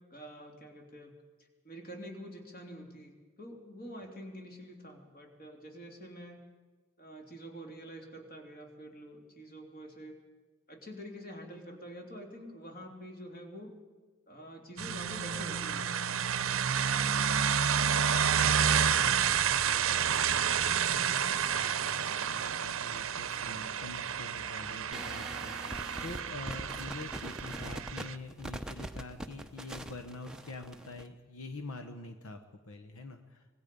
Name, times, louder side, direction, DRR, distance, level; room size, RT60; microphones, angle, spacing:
voice 1, 0.1-1.2 1.6-6.4 7.0-10.2 10.7-13.7 14.3-15.9, equal, 40° left, 2 dB, 3.0 m, -47 dB
sound 1, 14.8-28.2, right 8 dB, 70° right, 0.7 m, -30 dB
voice 2, 18.4-33.5, left 2 dB, 80° left, 6 dB, 1.2 m, -46 dB
sound 2, 24.9-31.1, right 1 dB, 5° right, 0.7 m, -42 dB
25.0 x 19.5 x 5.3 m, 1.3 s
head